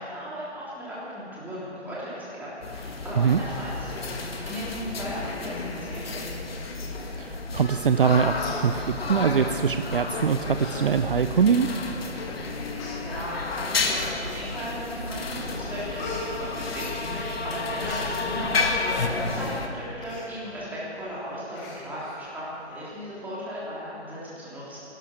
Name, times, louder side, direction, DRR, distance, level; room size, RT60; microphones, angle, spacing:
voice 1, 0.0-3.8 4.0-6.4 12.9-24.8, equal, 5° right, -8 dB, 3.4 m, -37 dB
sound 1, 2.6-19.7, left 3 dB, 60° left, 1.8 m, -32 dB
voice 2, 7.2-11.7, right 6 dB, 50° right, 9 dB, 0.6 m, -23 dB
Human voice, 7.9-8.1 8.3-9.2 10.0-10.2 10.6-10.8 11.2-11.3 12.1-12.2 12.7-13.0 13.9-14.4 14.9-15.3 15.5-17.2 17.5-18.1 20.0-20.3 20.7-20.8 21.0-21.2 21.5-22.2 22.6-22.7, left 2 dB, 20° left, 2.5 m, -40 dB
sound 2, 14.7-19.1, left 4 dB, 75° left, 1.5 m, -34 dB
16.5 x 12.5 x 6.2 m, 2.7 s
figure-of-eight pair, 140°, 34 cm